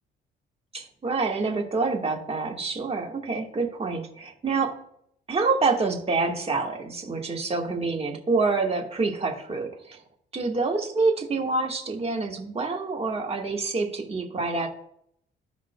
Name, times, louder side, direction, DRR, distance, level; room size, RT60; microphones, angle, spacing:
voice 1, 0.7-4.8 5.3-10.0 10.3-14.7, right 3 dB, 30° right, 1 dB, 1.5 m, -27 dB
14.0 x 5.0 x 2.2 m, 0.72 s
cardioid pair, 90°, 20 cm